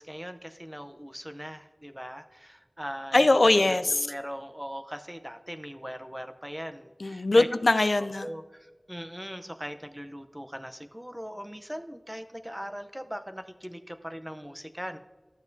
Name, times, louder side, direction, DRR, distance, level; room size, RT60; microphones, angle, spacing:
voice 1, 0.0-3.2 3.7-7.5 8.0-15.0, equal, 10° right, 8 dB, 0.6 m, -40 dB
voice 2, 3.1-4.1 7.0-8.3, left 2 dB, 80° left, 11 dB, 0.3 m, -22 dB
13.0 x 7.2 x 2.6 m, 1.3 s
wide cardioid pair, 45°, 0 cm